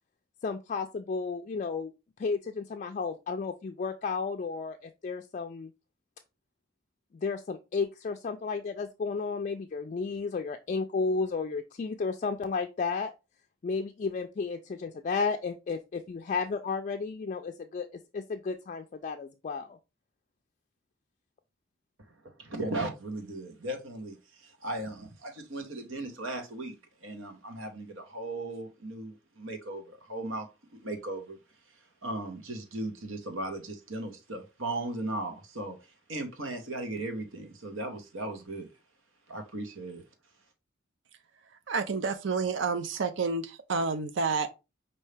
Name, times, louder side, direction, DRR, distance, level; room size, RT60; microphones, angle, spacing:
voice 1, 0.4-1.9 2.2-5.7 7.1-13.1 13.6-19.8, left 4 dB, 40° left, 0.3 m, -33 dB
voice 2, 22.4-31.4 32.0-35.8 36.1-38.7 39.3-40.0, right 2 dB, 90° right, 1.2 m, -37 dB
voice 3, 41.4-44.5, right 4 dB, 65° right, 0.5 m, -30 dB
5.4 x 2.7 x 3.3 m
head